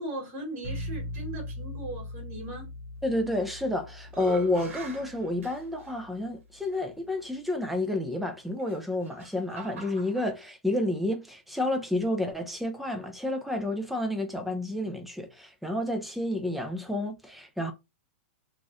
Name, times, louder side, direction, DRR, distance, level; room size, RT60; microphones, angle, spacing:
voice 1, 0.0-2.7, right 1 dB, 35° right, 1.7 m, -38 dB
sound 1, 0.6-6.4, left 1 dB, 30° left, 1.0 m, -40 dB
voice 2, 3.0-17.7, left 1 dB, ahead, 0.6 m, -30 dB
sound 2, 3.3-3.7 4.1-5.9 6.7-6.8 8.6-10.3, right 3 dB, 80° right, 0.9 m, -42 dB
3.0 x 2.5 x 2.6 m
hypercardioid pair, 145°, 7 cm